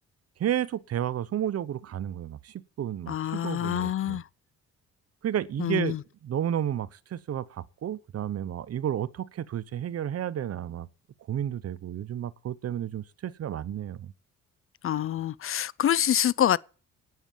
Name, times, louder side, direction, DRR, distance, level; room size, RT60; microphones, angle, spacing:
voice 1, 0.4-4.2 5.2-6.0 6.2-10.9 11.3-14.1, right 10 dB, 55° right, 0.8 m, -32 dB
voice 2, 3.1-4.2 5.6-6.0 14.8-16.6, left 10 dB, 45° left, 0.5 m, -26 dB
10.5 x 9.2 x 7.0 m
cardioid pair, 90°, 30 cm